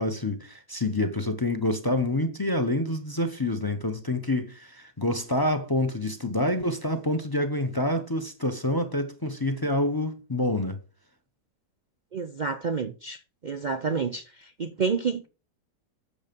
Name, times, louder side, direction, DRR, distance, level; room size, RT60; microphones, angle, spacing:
voice 1, 0.0-10.8, left 1 dB, 20° left, 0.6 m, -27 dB
voice 2, 12.1-13.2 13.4-14.2 14.6-15.3, right 5 dB, 75° right, 0.4 m, -28 dB
8.4 x 6.9 x 5.2 m
omnidirectional pair, 1.8 m